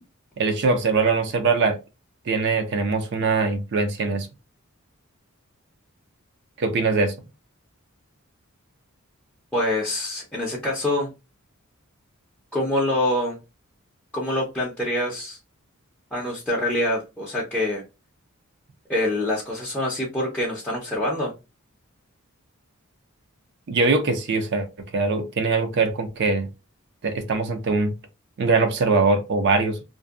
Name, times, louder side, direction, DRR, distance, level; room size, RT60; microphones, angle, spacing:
voice 1, 0.4-1.8 2.3-4.3 6.6-7.1 23.7-24.7 24.9-26.5 27.0-27.9 28.4-29.8, right 3 dB, 50° right, 0.4 m, -22 dB
voice 2, 9.5-11.1 12.5-13.4 14.1-15.4 16.1-17.8 18.9-21.3, left 1 dB, 5° left, 0.5 m, -25 dB
2.6 x 2.1 x 2.3 m
head